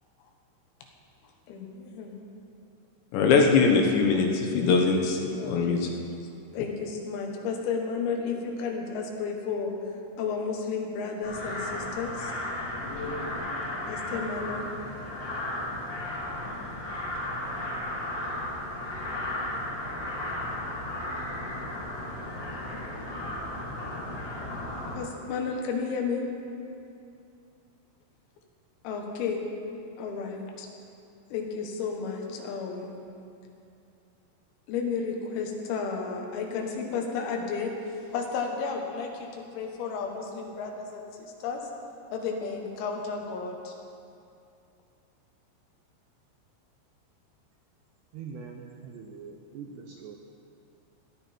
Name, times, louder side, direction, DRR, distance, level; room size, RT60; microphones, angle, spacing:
voice 1, 1.5-2.2 5.4-5.8 6.5-9.7 10.2-12.3 13.9-14.7 24.9-26.3 28.8-29.5 30.0-30.7 31.3-33.1 34.7-41.7 42.1-43.8, left 5 dB, 90° left, 1 dB, 4.2 m, -32 dB
voice 2, 3.1-5.2 5.5-5.8, left 4 dB, 75° left, 2 dB, 3.0 m, -21 dB
sound 1, 11.2-25.0, left 1 dB, 35° left, 1.9 m, -34 dB
voice 3, 48.1-50.2, right 6 dB, 85° right, 2 dB, 2.3 m, -42 dB
18.0 x 12.5 x 4.5 m, 2.6 s
omnidirectional pair, 5.9 m